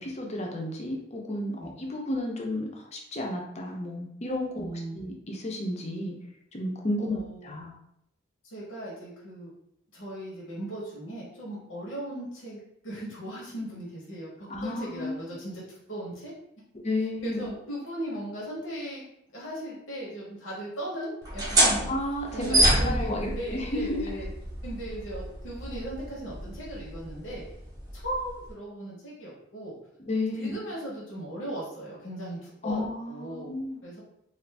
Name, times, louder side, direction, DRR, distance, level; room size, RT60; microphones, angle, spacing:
voice 1, 0.0-6.1 6.5-7.7 14.5-15.2 16.8-17.5 21.9-24.0 30.1-30.6 32.6-33.8, left 1 dB, 35° left, 0 dB, 0.5 m, -32 dB
voice 2, 4.6-5.0 7.0-7.5 8.4-9.5 9.9-15.6 15.9-16.3 17.2-19.0 19.3-21.9 22.3-24.3 24.6-27.4 27.9-29.7 30.3-33.5 33.8-34.0, right 1 dB, 80° left, -6 dB, 1.0 m, -37 dB
sound 1, 21.2-28.5, right 1 dB, 20° right, 0.7 m, -28 dB
2.5 x 2.4 x 3.3 m, 0.75 s
head